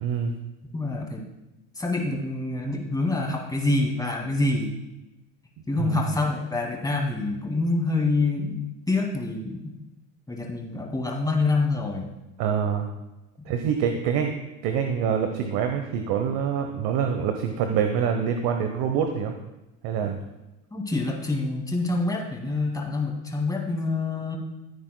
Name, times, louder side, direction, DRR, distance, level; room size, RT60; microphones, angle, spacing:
voice 1, 0.0-0.4 5.8-6.2 12.4-12.9 13.5-14.3 14.6-19.3 19.8-20.2, right 7 dB, 60° right, 5 dB, 1.0 m, -25 dB
voice 2, 0.7-1.2 1.8-4.7 5.7-9.8 10.3-12.1 13.4-13.5 20.7-24.4, left 2 dB, 10° left, 0 dB, 2.1 m, -26 dB
15.0 x 9.0 x 2.2 m, 0.99 s
supercardioid pair, 100°, 43 cm